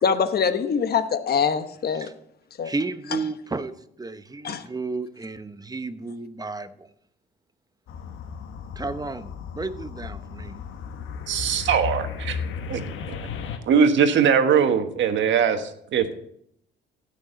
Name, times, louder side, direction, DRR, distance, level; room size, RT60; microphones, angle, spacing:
voice 1, 0.0-2.1 2.6-2.7 3.1-3.2 4.4-4.7, left 6 dB, 50° left, 1.0 m, -24 dB
voice 2, 2.6-6.9 8.8-10.6, right 3 dB, 20° right, 0.8 m, -32 dB
sound 1, 7.9-13.6, left 6 dB, 85° left, 1.3 m, -34 dB
voice 3, 11.3-12.4 12.7-12.8 13.1-13.2 13.7-16.2, right 7 dB, 70° right, 1.4 m, -21 dB
16.5 x 6.4 x 3.9 m
cardioid pair, 90°, 20 cm